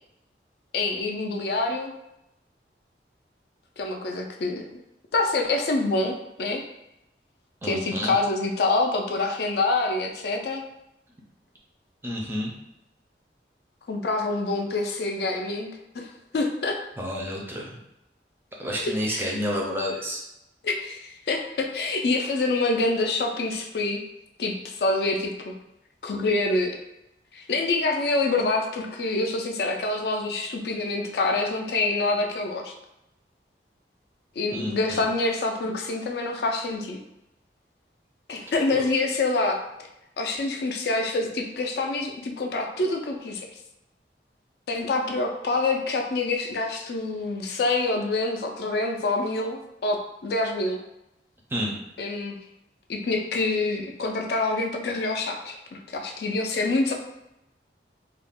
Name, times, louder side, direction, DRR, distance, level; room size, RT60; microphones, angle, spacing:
voice 1, 0.7-1.9 3.8-4.7 5.1-6.6 7.6-10.6 13.9-16.8 18.8-19.3 20.6-24.0 24.4-25.5 26.0-26.8 27.3-32.7 34.4-37.0 38.3-39.6 40.2-43.5 44.7-50.8 52.0-52.4 52.9-56.9, left 2 dB, 65° left, 2 dB, 0.4 m, -26 dB
voice 2, 7.6-8.2 12.0-12.5 17.0-17.8 18.6-20.2 34.5-35.1 38.7-38.8 51.5-51.7, equal, 15° right, -1 dB, 0.4 m, -30 dB
2.4 x 2.1 x 3.5 m, 0.86 s
head